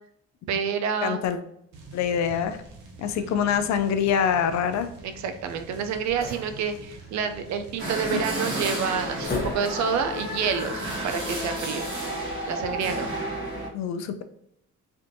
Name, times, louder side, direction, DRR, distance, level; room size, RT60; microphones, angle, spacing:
voice 1, 0.5-1.2 3.2-3.3 5.0-11.8 12.5-13.1, right 6 dB, 65° right, 8 dB, 0.5 m, -28 dB
voice 2, 1.0-1.4 1.9-2.6 3.0-4.9 8.1-8.2 13.7-14.2, left 8 dB, 65° left, 10 dB, 0.4 m, -25 dB
sound 1, 1.7-7.8, right 3 dB, 90° right, 0.8 m, -46 dB
sound 2, 2.4-10.1, left 3 dB, 30° left, 0.9 m, -41 dB
sound 3, 7.8-13.7, right 1 dB, 40° right, 1.2 m, -31 dB
3.4 x 2.5 x 2.7 m, 0.75 s
cardioid pair, 90°, 30 cm